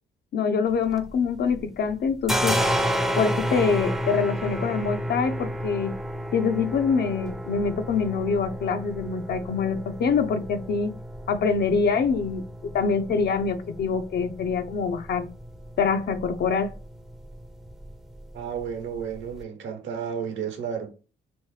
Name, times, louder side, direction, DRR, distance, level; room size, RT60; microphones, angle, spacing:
voice 1, 0.3-2.6 3.2-5.9 6.3-11.0 11.3-15.3 15.8-16.7, left 5 dB, 55° left, 0.6 m, -25 dB
sound 1, 0.7-1.6 1.9-19.4, equal, ahead, 0.5 m, -32 dB
voice 2, 18.3-20.9, right 7 dB, 75° right, 1.0 m, -32 dB
3.1 x 3.1 x 3.2 m
cardioid pair, 90°, 20 cm